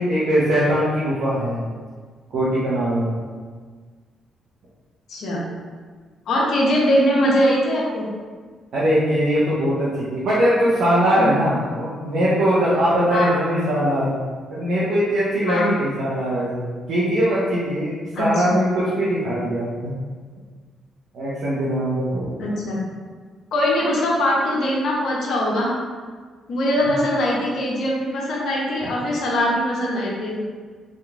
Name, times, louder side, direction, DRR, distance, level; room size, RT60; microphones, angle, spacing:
voice 1, 0.0-1.6 2.3-3.1 8.7-14.2 14.5-17.9 18.2-19.9 21.1-22.5, equal, 65° right, -8 dB, 0.6 m, -21 dB
voice 2, 5.1-5.4 6.3-8.1 11.1-11.3 13.1-13.3 15.5-15.7 18.1-18.5 22.4-22.8 23.5-25.7 26.5-30.4, equal, 65° left, -4 dB, 0.7 m, -21 dB
3.0 x 2.4 x 2.3 m, 1.5 s
hypercardioid pair, 50°, 0 cm